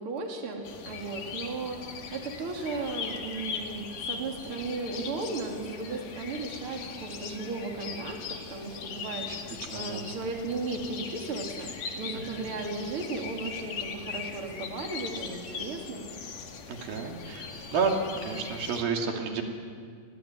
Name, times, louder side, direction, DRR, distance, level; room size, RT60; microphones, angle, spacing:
voice 1, 0.0-16.3, right 3 dB, 40° right, 2 dB, 3.5 m, -36 dB
sound 1, 0.6-18.8, left 6 dB, 65° left, 3.4 m, -40 dB
voice 2, 9.7-10.1 12.3-12.4 16.7-17.9 18.2-19.4, right 6 dB, 90° right, 2 dB, 4.4 m, -31 dB
28.5 x 21.0 x 9.4 m, 2.1 s
omnidirectional pair, 4.0 m